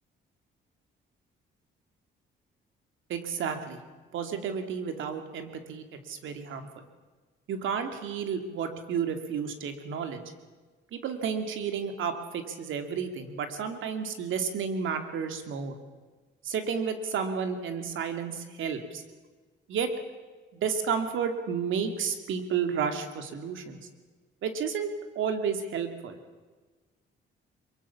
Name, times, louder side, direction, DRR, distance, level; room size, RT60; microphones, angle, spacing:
voice 1, 3.1-3.8 4.1-6.7 7.5-10.2 10.9-15.7 16.4-19.0 19.7-19.9 20.5-23.8 24.4-26.2, right 6 dB, 80° right, 7 dB, 2.8 m, -31 dB
24.5 x 22.5 x 7.2 m, 1.3 s
cardioid pair, 90°, 20 cm